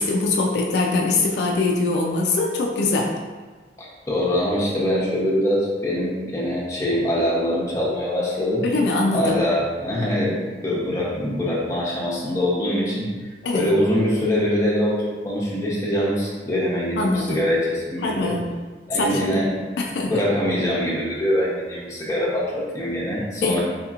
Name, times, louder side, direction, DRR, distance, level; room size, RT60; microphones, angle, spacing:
voice 1, 0.0-3.1 8.6-9.4 13.4-13.7 17.0-17.4 18.0-18.5 18.9-19.5 19.8-20.1 23.4-23.6, left 3 dB, 65° left, -1 dB, 0.4 m, -22 dB
voice 2, 3.8-8.6 9.1-13.1 13.5-18.3 18.9-19.5 19.9-23.6, equal, 15° left, -6 dB, 0.7 m, -23 dB
4.1 x 2.9 x 2.4 m, 1.4 s
head